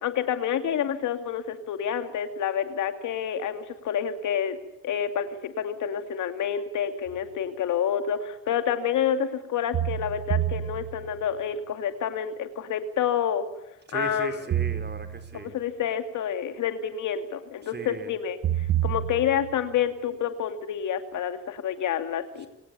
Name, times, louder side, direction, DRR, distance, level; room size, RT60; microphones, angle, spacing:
voice 1, 0.0-4.6 4.8-13.4 13.9-14.4 15.3-22.5, left 8 dB, 75° left, 8 dB, 2.7 m, -28 dB
sound 1, 7.1-7.2 9.7-11.4 14.5-15.6 18.4-19.8, right 12 dB, 55° right, 1.3 m, -29 dB
voice 2, 13.9-15.5 17.6-18.1, right 4 dB, 35° right, 8 dB, 4.6 m, -37 dB
29.0 x 19.0 x 7.1 m, 0.88 s
cardioid pair, 90°, 30 cm